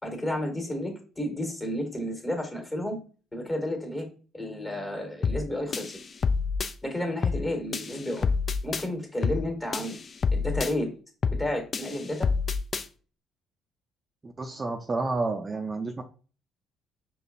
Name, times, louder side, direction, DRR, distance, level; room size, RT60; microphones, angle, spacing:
voice 1, 0.0-3.0 3.3-4.1 4.3-6.0 6.8-8.3 8.6-10.0 10.3-10.9 11.4-12.3, left 1 dB, 25° left, 3 dB, 1.5 m, -31 dB
sound 1, 5.2-5.5 5.7-6.7 7.2-7.5 7.7-8.8 9.2-9.5 9.7-10.7 11.2-11.5 11.7-12.8, left 5 dB, 40° left, 0.3 m, -27 dB
voice 2, 14.2-16.0, right 3 dB, 30° right, 4 dB, 0.4 m, -30 dB
5.0 x 2.3 x 2.6 m, 0.38 s
hypercardioid pair, 50°, 0 cm